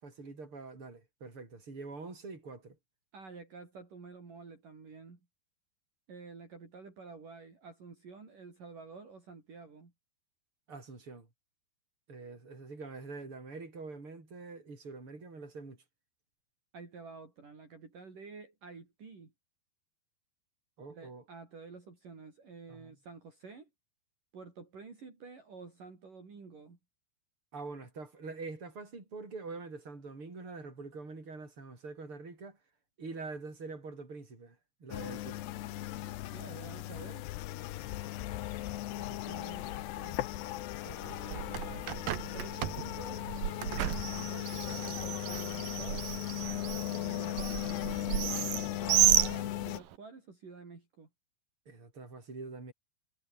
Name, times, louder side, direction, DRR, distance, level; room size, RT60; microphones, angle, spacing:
voice 1, 0.0-2.8 10.7-11.3 12.1-15.8 20.8-21.2 22.7-22.9 27.5-32.6 33.0-35.4 40.4-40.6 46.8-47.2 51.7-52.7, right 3 dB, 30° right, 7.7 m, -45 dB
voice 2, 3.1-5.2 6.1-9.9 16.7-19.3 20.9-23.7 24.3-26.8 36.3-37.3 39.0-40.2 40.8-41.9 42.3-43.3 44.1-46.1 46.9-48.5 48.8-51.1, right 4 dB, 45° right, 6.8 m, -50 dB
sound 1, 34.9-49.8, left 15 dB, 75° left, 3.1 m, -37 dB
Bird, 41.1-50.0, right 12 dB, 65° right, 2.8 m, -33 dB
omnidirectional pair, 5.2 m